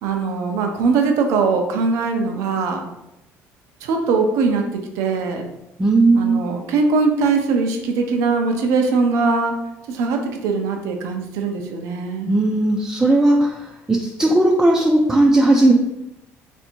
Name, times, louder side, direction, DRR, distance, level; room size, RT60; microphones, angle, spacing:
voice 1, 0.0-2.8 3.8-4.6 5.0-5.4 6.1-9.5 9.9-12.3, right 4 dB, 80° right, 3 dB, 0.6 m, -21 dB
voice 2, 5.8-6.6 12.3-13.6 13.9-15.7, right 2 dB, 10° right, -2 dB, 0.4 m, -16 dB
3.4 x 2.7 x 4.4 m, 0.88 s
cardioid pair, 145°, 5 cm